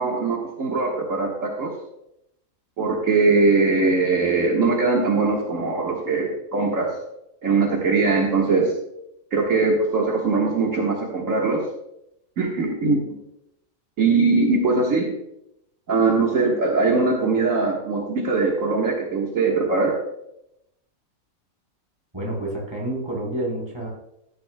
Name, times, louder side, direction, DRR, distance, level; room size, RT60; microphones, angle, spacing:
voice 1, 0.0-1.7 2.8-6.9 7.4-8.7 9.3-11.6 12.4-13.1 14.0-15.1 15.9-20.0, right 3 dB, 65° right, -2 dB, 1.8 m, -21 dB
voice 2, 22.1-23.9, right 1 dB, 20° right, -3 dB, 3.8 m, -28 dB
15.0 x 10.5 x 2.2 m, 0.81 s
omnidirectional pair, 1.5 m